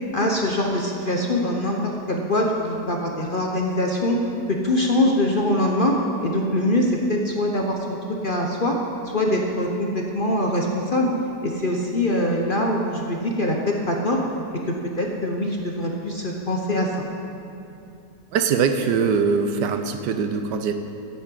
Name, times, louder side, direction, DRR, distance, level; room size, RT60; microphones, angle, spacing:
voice 1, 0.1-8.0 8.2-8.8 9.1-11.1 11.4-14.2 14.7-17.0, left 1 dB, 40° left, 1 dB, 0.9 m, -23 dB
voice 2, 18.3-20.7, right 5 dB, 75° right, 8 dB, 1.4 m, -22 dB
10.5 x 7.7 x 8.3 m, 2.8 s
omnidirectional pair, 1.9 m